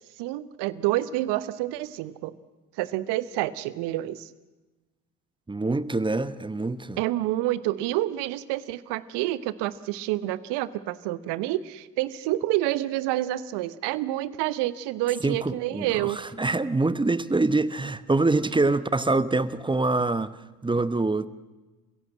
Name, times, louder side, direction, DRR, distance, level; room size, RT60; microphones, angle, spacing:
voice 1, 0.2-2.3 2.8-4.3 7.0-16.2, right 15 dB, 60° right, 1.1 m, -28 dB
voice 2, 5.5-7.0 15.2-20.3 20.6-21.3, right 3 dB, 10° right, 0.9 m, -25 dB
29.0 x 16.0 x 7.6 m
hypercardioid pair, 60°, 47 cm